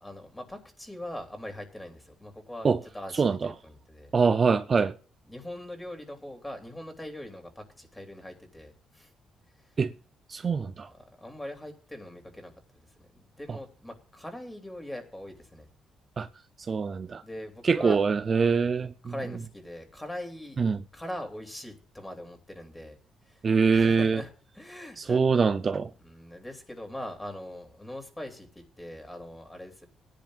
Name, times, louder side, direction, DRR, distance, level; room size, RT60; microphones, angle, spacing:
voice 1, 0.0-4.1 5.3-9.1 9.6-9.7 10.9-12.5 13.0-15.7 17.2-18.1 19.0-20.6 20.9-23.0 23.2-23.5 23.7-25.2 26.0-29.9, left 1 dB, 10° left, 2.8 m, -41 dB
voice 2, 3.2-3.5 4.1-4.9 9.8-9.9 10.3-10.9 16.2-16.3 16.7-17.2 17.6-18.9 20.6-20.8 23.4-24.2 25.0-25.9, right 5 dB, 40° right, 0.5 m, -24 dB
19.0 x 10.5 x 2.4 m
cardioid pair, 90°, 0 cm